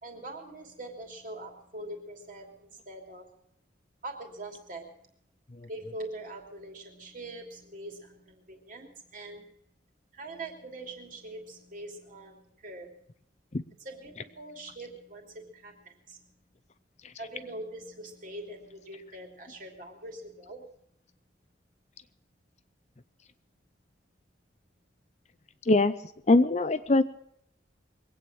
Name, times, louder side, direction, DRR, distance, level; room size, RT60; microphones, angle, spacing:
voice 1, 0.0-3.2 4.0-4.9 5.7-9.4 10.1-12.9 13.8-16.2 17.2-20.6, right 2 dB, 45° right, 2 dB, 2.9 m, -43 dB
voice 2, 26.3-27.0, left 2 dB, 35° left, 12 dB, 0.6 m, -21 dB
22.5 x 8.8 x 6.1 m, 0.70 s
head